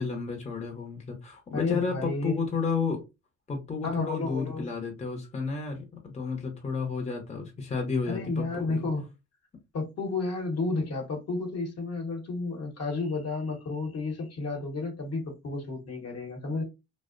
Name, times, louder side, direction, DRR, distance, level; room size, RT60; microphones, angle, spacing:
voice 1, 0.0-3.0 3.5-8.8, left 5 dB, 20° left, 0.7 m, -32 dB
voice 2, 1.5-2.4 3.8-4.7 8.1-9.1 9.7-16.6, left 3 dB, 55° left, 1.0 m, -32 dB
2.5 x 2.0 x 2.4 m
cardioid pair, 90°, 30 cm